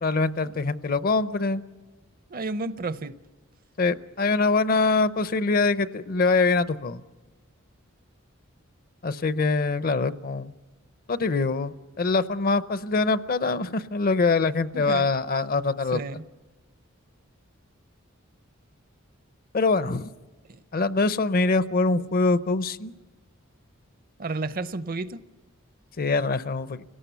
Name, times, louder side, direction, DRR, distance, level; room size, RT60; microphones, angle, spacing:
voice 1, 0.0-1.6 3.8-7.0 9.0-10.5 11.1-16.0 19.5-20.1 20.7-22.9 26.0-26.8, left 3 dB, 45° left, 15 dB, 0.6 m, -24 dB
voice 2, 2.3-3.1 14.7-15.1 15.9-16.2 20.5-20.6 24.2-25.2, right 3 dB, 45° right, 14 dB, 0.6 m, -32 dB
28.5 x 17.5 x 6.9 m, 1.2 s
head